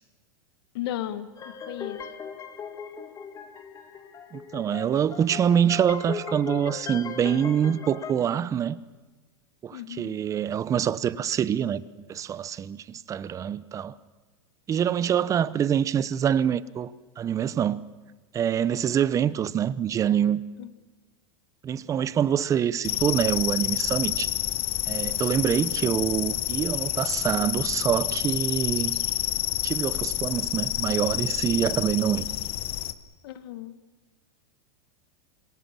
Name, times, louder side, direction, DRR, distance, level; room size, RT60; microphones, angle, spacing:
voice 1, 0.7-1.3 1.7-2.0 9.7-10.1 20.6-20.7 33.2-33.7, left 13 dB, 70° left, 1.6 m, -34 dB
sound 1, 1.4-8.1, left 6 dB, 25° left, 2.1 m, -38 dB
voice 2, 4.3-8.8 9.6-11.8 12.1-13.9 14.7-17.8 18.3-20.4 21.6-24.3 24.9-29.0 29.6-32.3, right 9 dB, 25° right, 0.8 m, -25 dB
sound 2, 22.8-32.9, left 15 dB, 45° left, 1.2 m, -28 dB
26.5 x 22.0 x 7.5 m
supercardioid pair, 130°, 13 cm